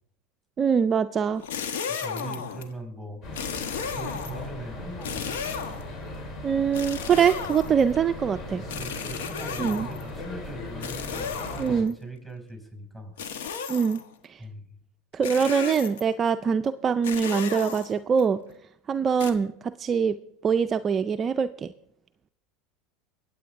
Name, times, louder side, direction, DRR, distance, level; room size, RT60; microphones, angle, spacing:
voice 1, 0.6-1.4 6.4-8.6 9.6-9.9 11.6-11.9 13.7-14.0 14.3-14.4 15.1-18.4 18.9-20.2 20.4-21.7, right 6 dB, 30° right, 10 dB, 0.4 m, -23 dB
sound 1, 1.4-2.7 3.3-4.5 5.0-6.0 6.7-8.0 8.7-10.1 10.8-11.9 13.2-14.1 15.2-16.1 17.0-18.2 19.2-19.3, left 7 dB, 85° left, 1.2 m, -34 dB
voice 2, 1.9-3.2 3.6-5.5 8.4-13.2 13.5-13.8 14.4-14.8, right 2 dB, 5° left, 4 dB, 5.8 m, -41 dB
sound 2, 3.2-11.8, left 1 dB, 45° left, 4.2 m, -38 dB
23.0 x 8.3 x 3.6 m, 0.78 s
hypercardioid pair, 100°, 0 cm